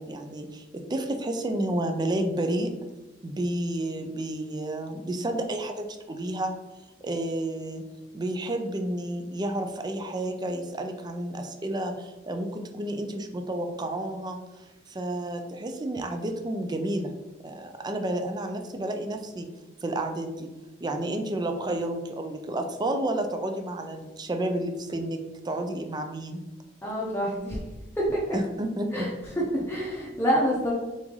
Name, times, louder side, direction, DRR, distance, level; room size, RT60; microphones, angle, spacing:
voice 1, 0.0-2.7 3.2-6.5 7.0-7.8 8.1-17.1 17.4-19.5 19.8-20.5 20.8-25.2 25.4-26.4 28.3-29.1, right 1 dB, 20° right, 5 dB, 0.4 m, -31 dB
voice 2, 26.8-27.6 28.0-28.4 28.9-29.1 29.4-30.7, equal, 10° left, -6 dB, 0.7 m, -27 dB
3.9 x 3.2 x 3.6 m, 1.1 s
head